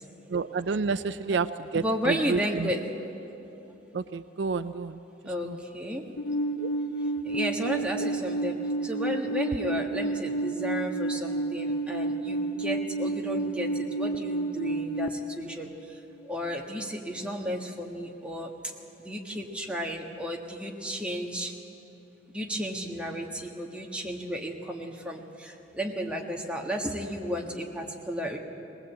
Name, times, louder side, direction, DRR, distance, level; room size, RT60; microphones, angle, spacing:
voice 1, 0.3-1.5 1.7-2.7 3.9-5.0 5.5-5.6 6.6-6.7, right 4 dB, 70° right, 13 dB, 0.5 m, -29 dB
voice 2, 1.7-2.9 5.3-6.0 7.3-8.6 8.8-15.7 16.3-18.5 19.0-21.5 22.3-28.4, equal, 5° right, 0 dB, 1.6 m, -33 dB
Alarm, 6.2-15.1, right 2 dB, 80° left, 0.7 m, -30 dB
20.5 x 19.0 x 8.4 m, 3.0 s
head